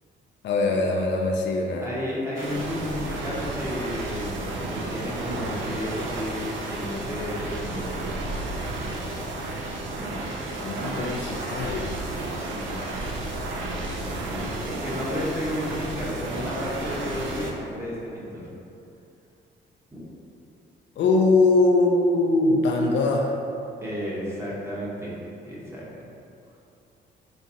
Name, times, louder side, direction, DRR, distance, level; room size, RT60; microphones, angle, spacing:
voice 1, 0.4-1.9 10.6-11.9 21.0-23.3, left 2 dB, 65° left, 1 dB, 0.4 m, -22 dB
voice 2, 1.8-4.4 4.7-7.9 10.0-10.1 12.4-12.8 13.9-18.4 19.9-20.0 23.8-25.1 25.4-25.8, left 1 dB, 15° right, -7 dB, 0.9 m, -32 dB
sound 1, 2.4-17.5, right 2 dB, 75° right, 0.5 m, -32 dB
4.0 x 2.3 x 2.7 m, 2.6 s
cardioid pair, 90°, 20 cm